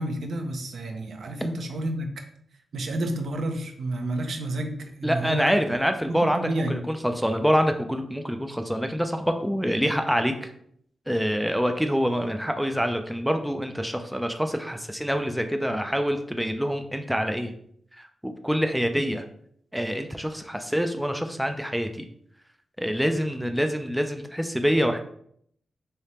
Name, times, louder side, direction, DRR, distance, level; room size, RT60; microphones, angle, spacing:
voice 1, 0.0-2.2 2.7-5.5 6.1-6.9, right 1 dB, 70° right, 4 dB, 0.6 m, -30 dB
voice 2, 5.0-10.5 11.1-17.5 17.9-19.3 19.7-22.1 22.8-25.0, equal, ahead, 6 dB, 0.3 m, -26 dB
3.3 x 2.8 x 4.2 m, 0.67 s
wide cardioid pair, 105°, 0 cm